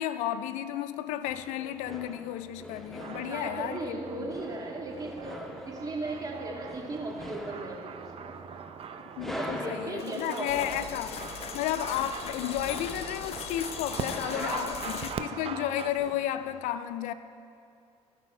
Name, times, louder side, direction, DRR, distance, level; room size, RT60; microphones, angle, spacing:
voice 1, 0.0-4.3 9.2-11.2 11.5-17.1, left 12 dB, 85° left, 0.4 m, -33 dB
sound 1, 1.2-16.6, equal, ahead, 1.0 m, -44 dB
sound 2, 3.0-15.9, right 7 dB, 50° right, 0.5 m, -42 dB
voice 2, 3.1-8.6 9.3-10.8 11.4-11.5 14.3-15.0, right 2 dB, 30° right, 2.1 m, -37 dB
sound 3, 10.0-15.1, left 7 dB, 55° left, 0.7 m, -40 dB
15.0 x 5.5 x 4.4 m
supercardioid pair, 75°, 12 cm